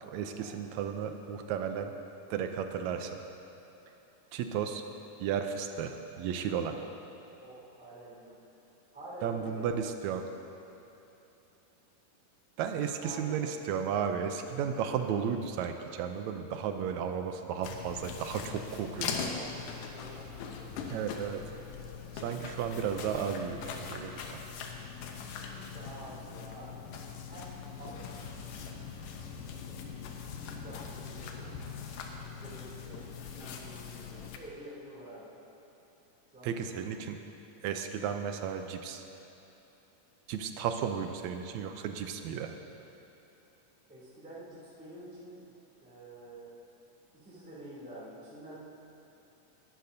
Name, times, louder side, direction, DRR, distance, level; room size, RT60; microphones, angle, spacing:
voice 1, 0.0-1.9 2.3-3.2 4.3-4.8 5.2-6.7 9.2-10.2 12.6-19.3 20.9-21.4 22.2-24.3 36.4-37.2 37.6-39.0 40.3-42.5, right 7 dB, 75° right, 6 dB, 1.8 m, -34 dB
voice 2, 7.4-8.4 8.9-9.8 12.9-13.8 19.2-21.0 25.2-26.9 27.2-28.5 28.9-29.8 30.4-31.5 32.4-35.3 36.3-36.9 43.9-45.4 45.8-46.5 47.1-48.6, right 1 dB, 5° right, -9 dB, 2.6 m, -49 dB
sound 1, 17.6-34.4, left 6 dB, 85° left, 2.5 m, -41 dB
19.5 x 12.0 x 2.7 m, 3.0 s
omnidirectional pair, 3.7 m